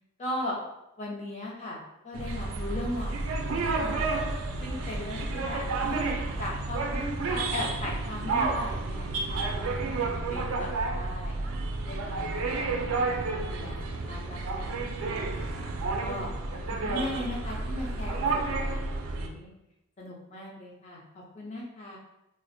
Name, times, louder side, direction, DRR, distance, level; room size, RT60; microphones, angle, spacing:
voice 1, 0.2-0.6 1.0-4.2 4.6-11.4 11.8-12.7 13.0-13.8 14.0-15.4 16.0-19.5 20.0-22.0, left 1 dB, 35° left, -3 dB, 0.5 m, -38 dB
sound 1, 2.1-19.3, right 3 dB, 90° right, 0.4 m, -31 dB
2.4 x 2.0 x 2.5 m, 0.89 s
head